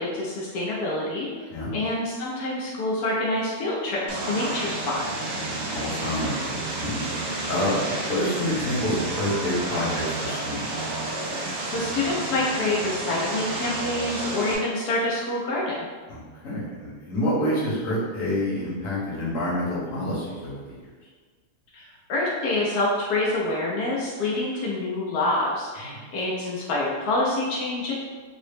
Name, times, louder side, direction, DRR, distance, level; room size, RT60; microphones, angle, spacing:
voice 1, 0.0-1.4 1.7-5.0 11.6-15.9 21.7-27.9, left 2 dB, 85° left, -5 dB, 0.8 m, -27 dB
Vehicle, 4.1-14.6, right 2 dB, 85° right, 0.8 m, -30 dB
voice 2, 5.4-7.1 7.5-10.9 16.1-20.9 25.8-26.1, left 1 dB, 50° left, -7 dB, 1.0 m, -28 dB
3.6 x 2.0 x 3.3 m, 1.5 s
omnidirectional pair, 2.4 m